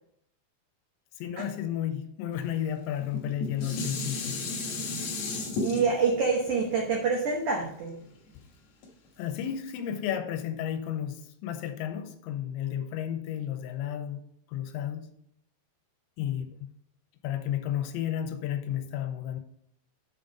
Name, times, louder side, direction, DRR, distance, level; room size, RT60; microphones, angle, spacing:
voice 1, 1.2-4.4 9.2-14.2 14.5-15.1 16.2-16.5 17.2-19.4, left 10 dB, 85° left, 2.9 m, -32 dB
Dishes pots and pans, 3.0-8.3 8.8-8.9, left 2 dB, 70° left, 1.8 m, -34 dB
voice 2, 5.6-7.9, right 4 dB, 85° right, 1.7 m, -26 dB
7.2 x 5.4 x 5.1 m
omnidirectional pair, 5.3 m